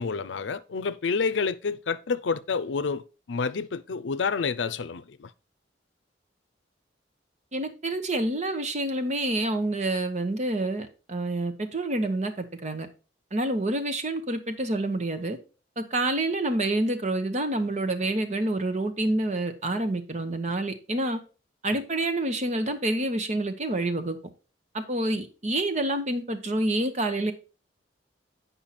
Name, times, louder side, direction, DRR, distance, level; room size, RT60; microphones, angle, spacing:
voice 1, 0.0-5.3 21.7-21.8, left 5 dB, 85° left, 0.5 m, -29 dB
voice 2, 7.5-12.9 13.3-15.4 15.8-21.2 21.6-24.2 24.7-27.3, right 1 dB, 40° right, 1.0 m, -28 dB
8.8 x 5.5 x 4.2 m
head